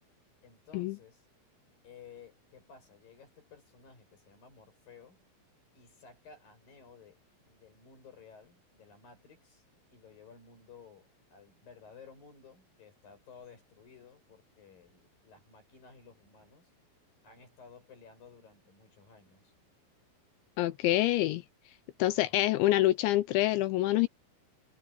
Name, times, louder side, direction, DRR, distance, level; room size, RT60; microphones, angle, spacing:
voice 1, 0.4-1.2 1.8-5.2 5.7-9.6 9.9-16.7 17.2-19.5 20.8-21.0 22.1-22.7, left 5 dB, 45° left, 8.4 m, -55 dB
voice 2, 20.6-21.4 22.0-24.1, left 15 dB, 80° left, 2.7 m, -26 dB
omnidirectional pair, 5.9 m